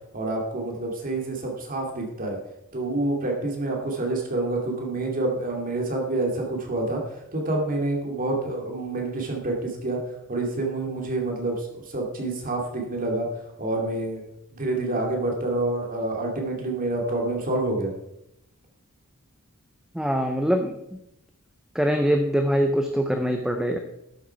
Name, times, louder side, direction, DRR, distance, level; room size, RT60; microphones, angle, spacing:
voice 1, 0.1-2.4 2.7-7.0 7.3-10.0 10.3-13.3 13.6-14.2 14.5-17.9, right 2 dB, 40° right, 0 dB, 2.4 m, -27 dB
voice 2, 19.9-21.0 21.7-23.8, equal, 5° right, 4 dB, 0.7 m, -23 dB
12.5 x 8.0 x 4.6 m, 0.82 s
head